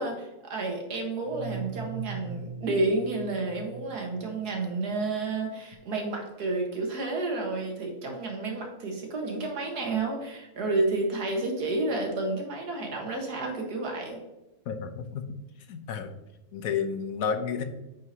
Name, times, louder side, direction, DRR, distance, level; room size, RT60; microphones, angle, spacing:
voice 1, 0.0-14.2, right 2 dB, 80° right, 1 dB, 2.0 m, -30 dB
sound 1, 1.2-4.9, right 4 dB, 60° right, 0.8 m, -41 dB
voice 2, 14.7-15.2 15.7-16.1 16.5-17.6, left 6 dB, 70° left, 8 dB, 1.1 m, -31 dB
9.3 x 4.8 x 2.8 m, 0.96 s
omnidirectional pair, 1.6 m